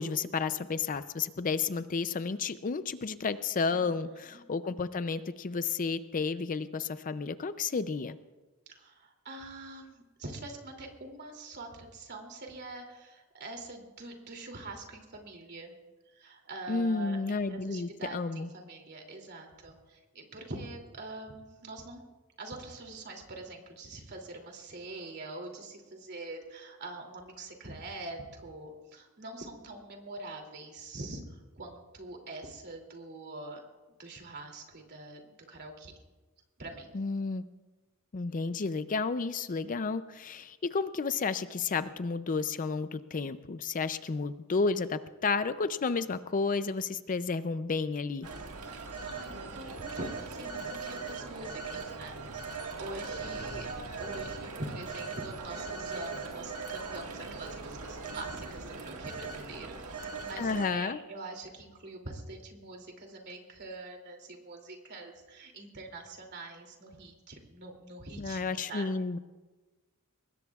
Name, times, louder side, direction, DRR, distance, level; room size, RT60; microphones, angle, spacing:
voice 1, 0.0-8.2 16.7-18.5 36.9-37.4 38.1-48.3 60.4-61.0 68.2-69.2, left 4 dB, 40° left, 12 dB, 0.5 m, -32 dB
voice 2, 3.7-4.4 8.7-15.7 16.1-22.0 22.4-33.6 34.0-35.9 36.6-37.0 48.7-53.7 54.0-68.9, right 2 dB, 50° right, 2 dB, 2.8 m, -44 dB
Telephone, 48.2-60.7, right 4 dB, 85° right, 1.7 m, -40 dB
23.5 x 20.5 x 2.4 m, 1.2 s
head